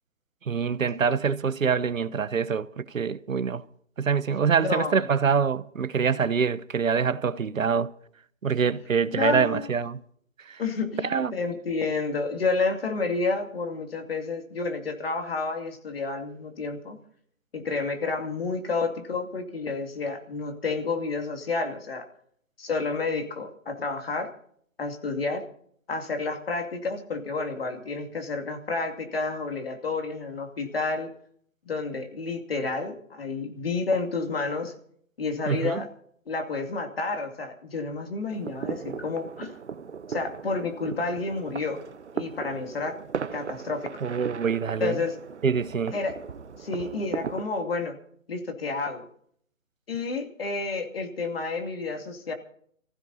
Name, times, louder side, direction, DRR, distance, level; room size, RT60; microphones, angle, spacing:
voice 1, 0.5-3.6 4.0-7.9 8.4-10.0 10.5-10.6 11.0-11.4 35.5-35.8 44.0-45.0 45.4-45.9, right 6 dB, 90° right, 1.0 m, -25 dB
voice 2, 4.6-5.0 9.2-9.6 10.6-17.0 17.5-22.1 22.6-24.3 24.8-25.4 25.9-31.1 31.7-34.7 35.2-35.9 36.3-39.5 40.1-41.8 42.1-43.0 43.3-43.9 44.8-45.1 45.9-46.1 46.6-48.0 48.3-49.1 49.9-52.3, left 3 dB, 50° left, 2.7 m, -30 dB
sound 1, 38.3-47.4, right 6 dB, 60° right, 1.0 m, -37 dB
26.5 x 15.5 x 2.8 m
hypercardioid pair, 165°, 39 cm